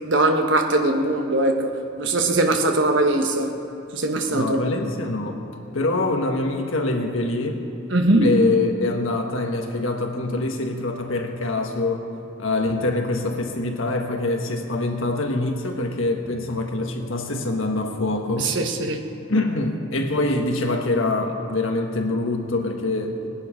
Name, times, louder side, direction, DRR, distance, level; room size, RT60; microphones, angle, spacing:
voice 1, 0.0-1.7 2.0-3.5 3.9-4.6 7.9-8.3 18.4-19.0, right 2 dB, 70° right, 4 dB, 1.3 m, -21 dB
voice 2, 4.3-5.4 5.7-7.7 8.2-12.1 12.4-18.6 19.3-23.2, left 2 dB, 85° left, 3 dB, 1.4 m, -24 dB
18.0 x 10.5 x 5.1 m, 2.7 s
head